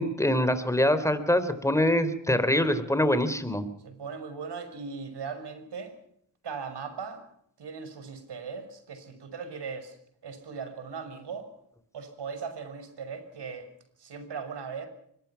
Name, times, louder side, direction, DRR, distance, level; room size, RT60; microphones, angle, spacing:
voice 1, 0.0-3.7, left 1 dB, 5° left, 11 dB, 4.1 m, -24 dB
voice 2, 3.8-5.9 6.4-7.2 7.6-10.0 10.2-11.5 11.9-13.7 14.0-14.9, right 5 dB, 65° right, 9 dB, 6.3 m, -38 dB
24.5 x 22.0 x 6.0 m, 0.72 s
supercardioid pair, 55°, 44 cm